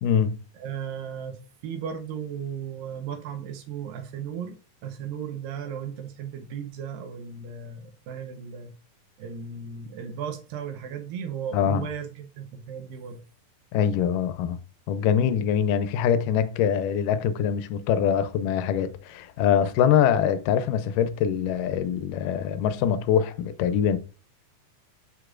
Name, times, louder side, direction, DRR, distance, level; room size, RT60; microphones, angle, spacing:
voice 1, 0.0-0.4 11.5-11.9 13.7-14.6 14.9-24.0, left 8 dB, 80° left, 2.0 m, -23 dB
voice 2, 0.6-4.6 4.8-8.7 9.2-13.2, right 7 dB, 80° right, 2.5 m, -36 dB
7.7 x 6.5 x 2.5 m
omnidirectional pair, 4.1 m